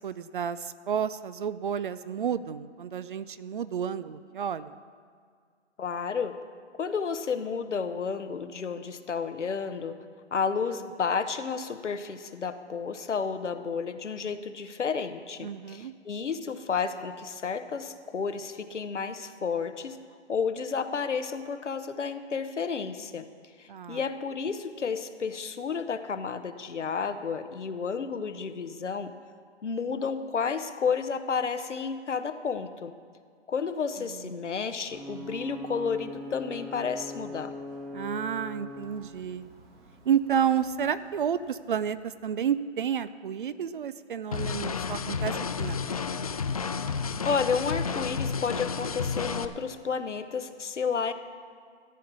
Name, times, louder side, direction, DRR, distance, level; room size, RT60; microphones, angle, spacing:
voice 1, 0.0-4.7 15.4-15.9 23.7-24.0 34.1-34.2 37.9-39.5 40.1-46.0, right 8 dB, 45° right, 15 dB, 0.5 m, -31 dB
voice 2, 5.8-6.4 6.8-10.0 10.3-20.0 20.3-23.3 23.6-29.1 29.6-32.9 33.5-37.5 47.2-51.1, left 5 dB, 85° left, 9 dB, 1.1 m, -31 dB
Ocean / Boat Water vehicle / Alarm, 34.9-42.4, left 1 dB, 20° right, 1.4 m, -43 dB
sound 1, 44.3-49.5, left 5 dB, 35° left, 0.4 m, -31 dB
13.5 x 8.7 x 6.1 m, 2.1 s
hypercardioid pair, 150°, 35 cm